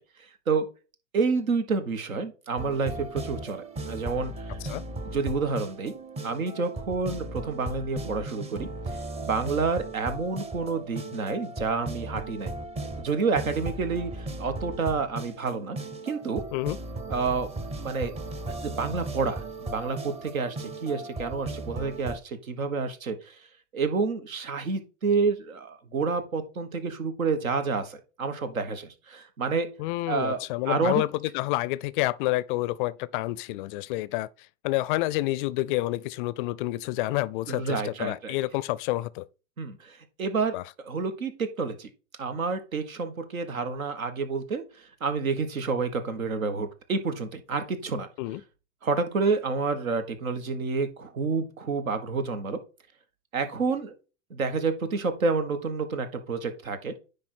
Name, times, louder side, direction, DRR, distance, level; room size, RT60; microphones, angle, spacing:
voice 1, 0.2-0.7 1.1-4.6 5.1-6.0 6.2-12.5 13.0-15.8 16.0-16.4 17.1-17.5 17.8-18.1 18.6-23.4 23.7-29.7 30.1-31.0 37.5-38.4 39.6-41.9 42.2-48.1 48.8-52.6 53.3-53.9 54.3-56.9, right 4 dB, 85° right, 1.5 m, -29 dB
sound 1, 2.6-22.2, right 2 dB, 15° right, 0.7 m, -37 dB
voice 2, 29.8-34.3 34.6-39.2 40.5-40.6 48.2-48.4, left 18 dB, 40° left, 0.4 m, -29 dB
9.9 x 3.5 x 4.4 m
hypercardioid pair, 110°, 40 cm